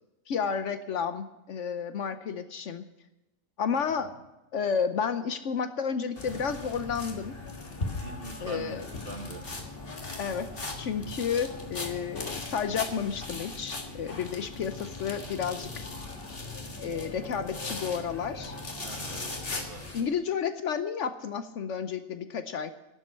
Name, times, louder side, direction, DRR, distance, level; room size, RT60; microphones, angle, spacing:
voice 1, 0.3-2.9 3.6-4.1 4.5-7.3 8.4-8.8 10.2-15.8 16.8-18.6 19.1-19.5 19.9-22.7, left 6 dB, 65° left, 10 dB, 1.0 m, -31 dB
voice 2, 3.8-4.1 8.0-9.5 18.8-19.9, right 1 dB, 45° right, 3 dB, 2.0 m, -43 dB
sound 1, 6.2-20.0, left 2 dB, 45° left, 1.9 m, -38 dB
11.5 x 7.6 x 9.7 m, 1.0 s
omnidirectional pair, 1.4 m